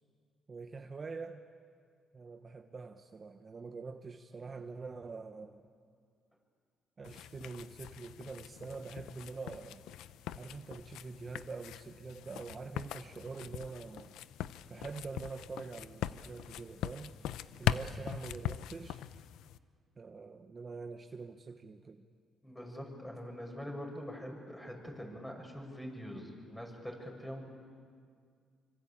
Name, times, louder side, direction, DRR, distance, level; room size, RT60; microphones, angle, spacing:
voice 1, 0.5-1.4 2.1-5.6 7.0-9.8 10.4-14.2 14.7-17.1 17.6-19.1 20.0-22.1, right 4 dB, 35° right, 6 dB, 1.2 m, -45 dB
sound 1, 7.0-19.6, left 11 dB, 90° left, 0.7 m, -41 dB
voice 2, 22.4-27.4, equal, 10° left, 1 dB, 6.9 m, -44 dB
25.5 x 25.0 x 8.7 m, 2.1 s
cardioid pair, 90°, 0 cm